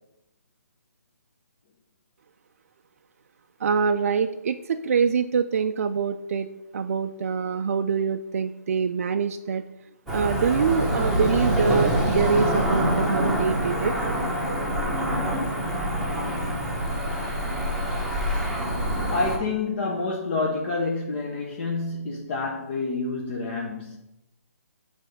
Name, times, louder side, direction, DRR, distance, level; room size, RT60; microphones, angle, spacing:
voice 1, 3.6-6.5 6.7-9.6 10.1-13.9, right 6 dB, 55° right, 0.4 m, -25 dB
Cricket / Motor vehicle (road), 10.1-19.4, equal, ahead, 1.1 m, -25 dB
voice 2, 18.8-24.0, left 3 dB, 40° left, 0.9 m, -28 dB
7.4 x 3.3 x 5.2 m
hypercardioid pair, 155°, 9 cm